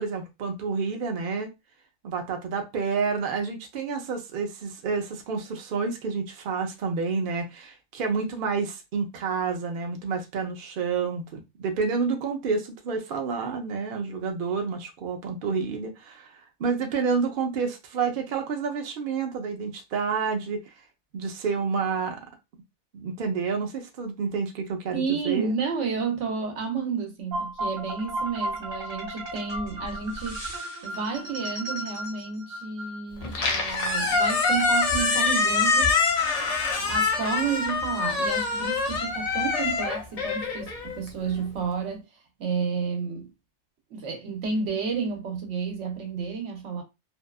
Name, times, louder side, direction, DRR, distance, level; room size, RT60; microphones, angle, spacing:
voice 1, 0.0-1.5 2.0-20.6 21.1-22.2 22.9-25.5, right 5 dB, 55° right, 0.7 m, -29 dB
voice 2, 24.9-30.6 30.8-36.0 36.7-42.0 42.4-43.3 43.9-46.8, right 5 dB, 90° right, 1.1 m, -31 dB
sound 1, 27.3-33.4, right 1 dB, 40° right, 1.1 m, -35 dB
Squeak, 33.2-41.5, left 4 dB, 60° left, 0.4 m, -25 dB
2.7 x 2.3 x 2.2 m
omnidirectional pair, 1.2 m